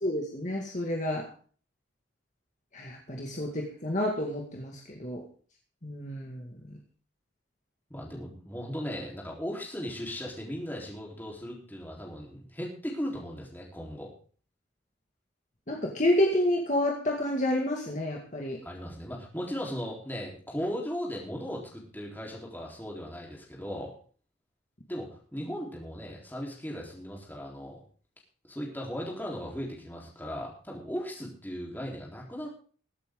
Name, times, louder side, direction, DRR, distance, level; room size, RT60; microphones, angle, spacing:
voice 1, 0.0-1.3 2.7-5.2 5.8-6.8 15.7-18.6, left 1 dB, 40° left, 0 dB, 2.0 m, -29 dB
voice 2, 7.9-14.1 18.6-24.0 24.9-27.8 28.4-32.5, equal, 10° left, -2 dB, 3.9 m, -37 dB
22.0 x 8.6 x 3.8 m, 0.43 s
head